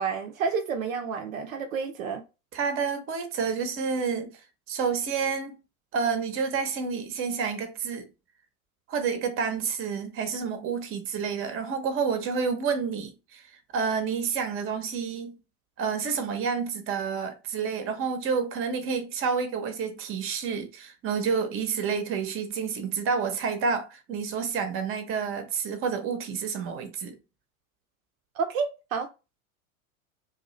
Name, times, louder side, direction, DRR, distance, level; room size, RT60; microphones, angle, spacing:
voice 1, 0.0-2.2 28.4-29.1, right 5 dB, 70° right, 0.6 m, -30 dB
voice 2, 2.5-4.3 4.7-5.6 5.9-8.1 8.9-13.4 13.7-15.4 15.8-27.1, right 6 dB, 30° right, 0.8 m, -29 dB
2.6 x 2.3 x 3.0 m
hypercardioid pair, 85°, 43 cm